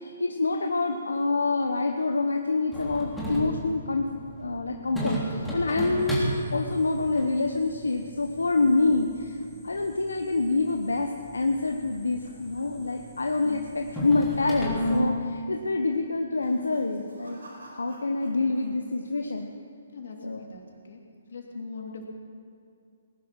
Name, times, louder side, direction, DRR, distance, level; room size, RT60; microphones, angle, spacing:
voice 1, 0.0-4.1 4.3-9.4 9.6-17.4 17.8-19.5 20.2-20.4, left 3 dB, 90° left, 4 dB, 1.0 m, -26 dB
sound 1, 2.7-15.0, equal, ahead, 3.4 m, -35 dB
sound 2, 10.7-13.2 13.5-13.8 14.1-14.2 15.0-15.4 16.3-18.7 18.9-19.5, right 1 dB, 85° right, 4.5 m, -48 dB
voice 2, 19.9-21.0 21.3-22.1, left 4 dB, 70° left, 1 dB, 3.1 m, -41 dB
19.5 x 11.0 x 6.1 m, 2.5 s
hypercardioid pair, 140°, 0 cm